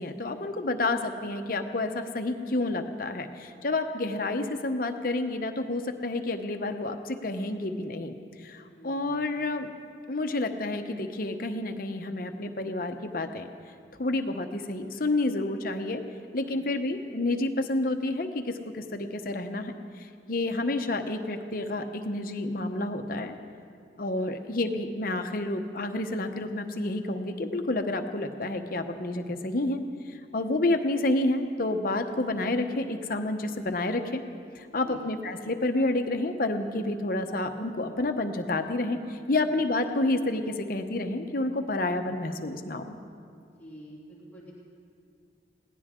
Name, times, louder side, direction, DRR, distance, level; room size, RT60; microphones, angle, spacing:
voice 1, 0.0-9.7 10.1-13.5 13.9-16.0 16.3-23.4 24.0-29.8 30.1-34.2 34.5-42.9, left 2 dB, 50° left, 6 dB, 0.9 m, -29 dB
voice 2, 8.6-9.4 16.4-16.6 24.1-24.4 34.8-35.0 39.3-39.5 43.6-44.5, equal, 10° left, -7 dB, 2.5 m, -48 dB
21.5 x 17.0 x 3.7 m, 2.3 s
head